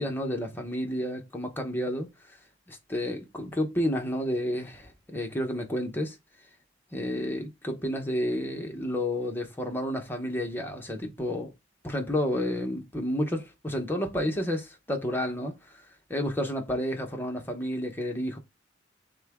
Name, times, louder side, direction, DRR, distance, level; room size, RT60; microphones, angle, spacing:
voice 1, 0.0-2.1 2.7-6.2 6.9-11.5 11.8-15.8 16.1-18.4, left 1 dB, 10° left, 0.9 m, -30 dB
6.4 x 2.3 x 3.5 m
head